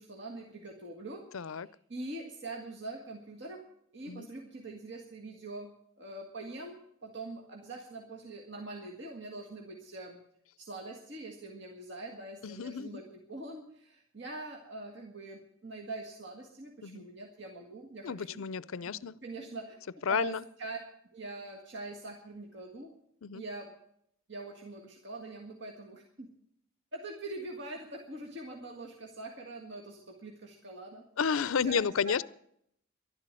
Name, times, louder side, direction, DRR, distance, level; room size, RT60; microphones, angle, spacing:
voice 1, 0.0-3.6 3.9-10.2 10.6-18.4 18.8-19.8 20.1-20.8 21.1-22.9 23.3-23.7 24.3-26.3 26.9-31.1 31.6-32.2, right 2 dB, 55° right, 1.8 m, -43 dB
voice 2, 1.3-1.7 4.1-4.3 12.4-13.0 16.8-17.0 18.0-19.1 20.1-20.4 23.2-23.4 31.2-32.2, left 6 dB, 75° left, 0.5 m, -31 dB
11.5 x 11.5 x 7.6 m
head